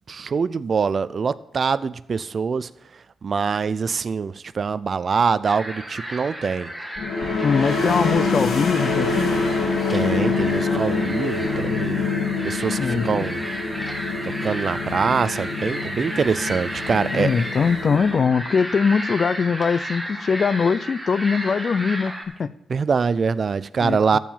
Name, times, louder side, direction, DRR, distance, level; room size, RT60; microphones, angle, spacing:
voice 1, 0.1-6.7 9.9-12.1 12.4-13.5 14.2-17.3 22.7-24.2, right 5 dB, 50° right, 0.4 m, -24 dB
sound 1, 5.4-22.2, right 1 dB, 10° right, 1.9 m, -33 dB
sound 2, 7.0-18.5, left 4 dB, 85° left, 2.7 m, -25 dB
voice 2, 7.4-9.3 12.8-13.2 17.1-22.1 22.4-22.5 23.8-24.2, left 5 dB, 50° left, 0.5 m, -21 dB
14.0 x 4.7 x 7.3 m
cardioid pair, 80°, 0 cm